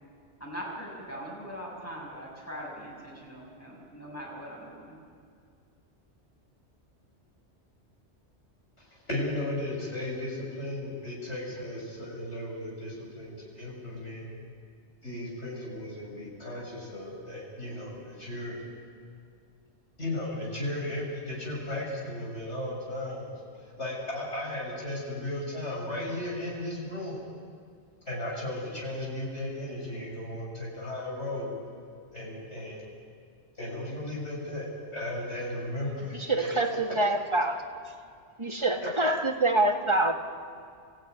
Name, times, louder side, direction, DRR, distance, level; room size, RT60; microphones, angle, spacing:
voice 1, 0.4-5.0, equal, 10° left, -4 dB, 6.5 m, -41 dB
voice 2, 8.8-14.2 15.0-18.6 20.0-23.3 23.8-27.2 28.1-31.5 32.1-32.9 33.6-36.5 36.9-37.3 38.8-38.9, left 1 dB, 75° left, -4 dB, 7.4 m, -35 dB
voice 3, 36.1-37.6 38.4-40.1, right 2 dB, 25° right, 2 dB, 1.9 m, -26 dB
29.0 x 15.5 x 9.5 m, 2.2 s
omnidirectional pair, 1.2 m